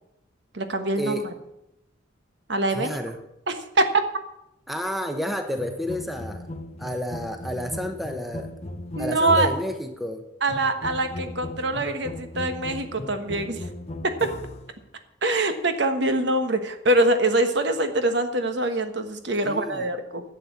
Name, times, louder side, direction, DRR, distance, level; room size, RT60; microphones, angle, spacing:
voice 1, 0.5-1.2 2.5-3.0 3.5-3.8 8.9-9.5 10.4-13.7 14.0-14.3 15.2-20.2, right 2 dB, 60° right, 8 dB, 1.3 m, -24 dB
voice 2, 2.7-3.2 4.7-6.5 6.8-8.5 9.0-10.3 19.4-19.9, equal, ahead, 6 dB, 0.9 m, -30 dB
sound 1, 5.6-9.8 10.5-14.7, left 1 dB, 35° left, 0.8 m, -36 dB
11.5 x 7.4 x 8.3 m, 0.85 s
head